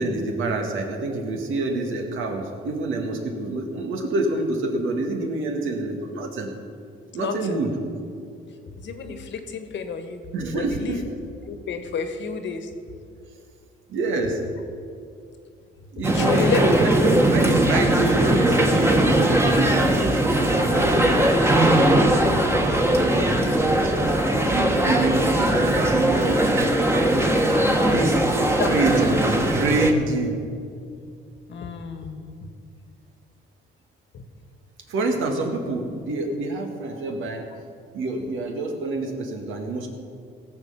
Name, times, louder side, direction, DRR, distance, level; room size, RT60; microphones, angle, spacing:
voice 1, 0.0-6.5 7.1-7.7 10.3-11.2 13.9-14.4 15.9-27.4 27.9-28.3 28.6-30.4 34.9-37.5 37.9-39.9, right 2 dB, 85° right, 2 dB, 2.0 m, -27 dB
voice 2, 8.8-10.2 10.5-11.0 11.5-12.7 16.1-16.7 28.6-28.9 31.5-32.4 34.1-34.2 36.8-37.0, left 6 dB, 65° left, 7 dB, 1.5 m, -30 dB
sound 1, 16.0-29.9, right 1 dB, 10° right, 1.4 m, -20 dB
17.5 x 7.5 x 5.8 m, 2.3 s
cardioid pair, 90°, 20 cm